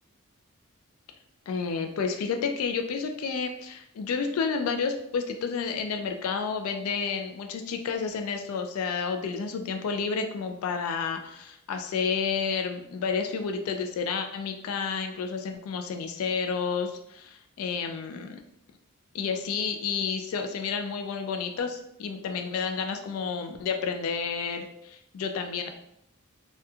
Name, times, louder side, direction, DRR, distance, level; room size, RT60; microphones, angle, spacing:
voice 1, 1.5-18.4 19.1-25.7, left 5 dB, 85° left, 6 dB, 0.3 m, -30 dB
2.9 x 2.2 x 2.3 m, 0.76 s
head